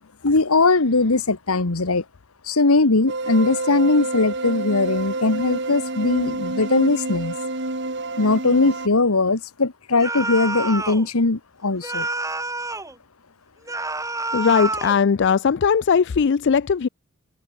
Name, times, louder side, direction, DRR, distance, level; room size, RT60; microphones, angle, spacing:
voice 1, 0.2-2.0 2.5-7.3 8.2-12.1, left 3 dB, 80° left, 1.4 m, -20 dB
sound 1, 3.1-8.9, right 2 dB, 55° right, 3.7 m, -28 dB
sound 2, 10.0-11.1 11.8-12.9 13.7-15.0, right 2 dB, 15° right, 5.3 m, -28 dB
voice 2, 14.3-16.9, left 6 dB, 55° left, 0.4 m, -19 dB
open air
head